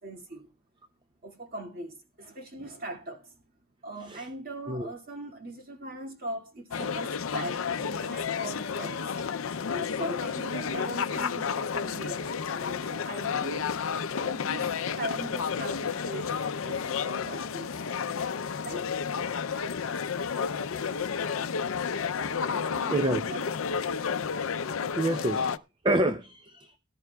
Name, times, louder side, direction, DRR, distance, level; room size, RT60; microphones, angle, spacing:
voice 1, 0.0-0.5 1.2-3.4 3.8-9.1 9.7-13.7 14.2-17.7 18.6-19.0 22.5-23.5, right 1 dB, 45° right, 2.2 m, -40 dB
sound 1, 6.7-25.6, left 6 dB, 70° left, 0.5 m, -31 dB
voice 2, 22.9-23.2 25.0-25.5 25.8-26.7, right 1 dB, 20° right, 0.6 m, -27 dB
18.5 x 11.0 x 2.3 m
head